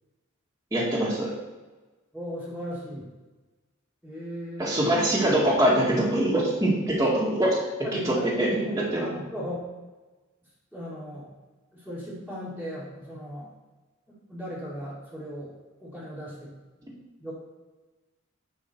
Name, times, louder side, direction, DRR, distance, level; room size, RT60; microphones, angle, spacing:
voice 1, 0.7-1.3 4.6-7.6 8.0-9.1, right 1 dB, 15° right, -7 dB, 1.9 m, -23 dB
voice 2, 2.1-3.1 4.0-4.8 7.8-8.3 8.5-8.8 9.0-9.6 10.7-11.3 11.7-13.5 14.1-15.5 15.8-16.5 17.2-17.3, equal, 5° left, -13 dB, 2.3 m, -37 dB
9.7 x 5.4 x 4.5 m, 1.2 s
head